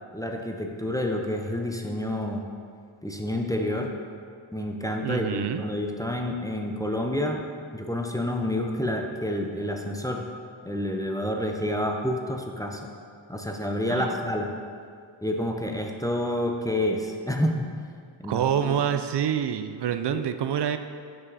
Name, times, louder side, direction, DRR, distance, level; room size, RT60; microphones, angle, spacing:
voice 1, 0.1-2.4 3.0-3.9 4.5-7.4 7.7-10.3 10.7-12.9 13.3-14.5 15.2-17.7 18.2-18.8 20.1-20.2, left 1 dB, 10° left, 2 dB, 0.6 m, -29 dB
voice 2, 5.0-5.6 13.9-14.2 18.3-20.8, right 9 dB, 60° right, 9 dB, 0.5 m, -26 dB
5.8 x 5.5 x 4.0 m, 2.1 s
cardioid pair, 50°, 47 cm